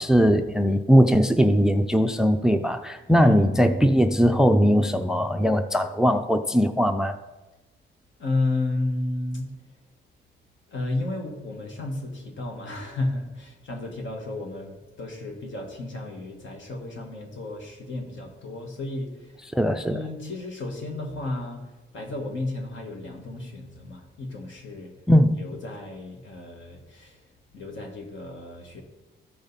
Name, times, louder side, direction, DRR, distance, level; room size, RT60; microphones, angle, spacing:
voice 1, 0.0-7.2 19.5-20.0 25.1-25.3, equal, 5° right, 9 dB, 0.4 m, -20 dB
voice 2, 8.2-9.5 10.7-19.5 19.8-24.9 25.4-27.2 27.5-28.8, left 2 dB, 70° left, 2 dB, 1.7 m, -32 dB
13.5 x 5.2 x 4.1 m, 1.1 s
cardioid pair, 110°, 21 cm